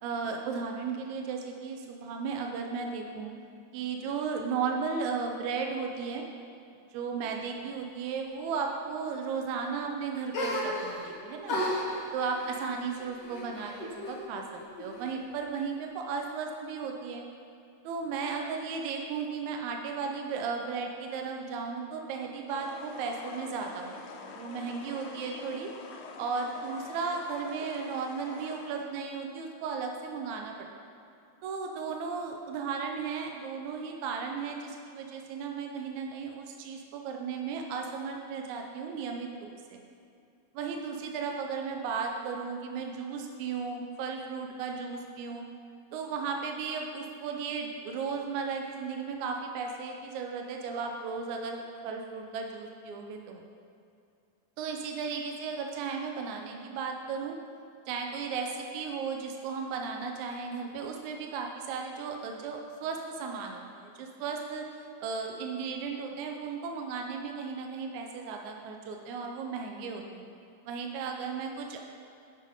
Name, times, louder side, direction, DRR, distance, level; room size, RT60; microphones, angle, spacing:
voice 1, 0.0-3.3 3.7-6.3 6.9-11.6 12.1-17.3 17.8-25.7 26.2-30.6 31.4-39.8 40.5-45.4 45.9-53.4 54.6-57.4 57.9-70.3 70.7-71.8, right 5 dB, 80° right, 2 dB, 1.9 m, -35 dB
sound 1, 10.3-11.1 11.5-14.2 14.5-15.3, left 1 dB, 60° left, 1.2 m, -35 dB
sound 2, 22.5-28.9, left 5 dB, 80° left, 1.7 m, -46 dB
8.9 x 4.2 x 4.8 m, 2.5 s
omnidirectional pair, 3.4 m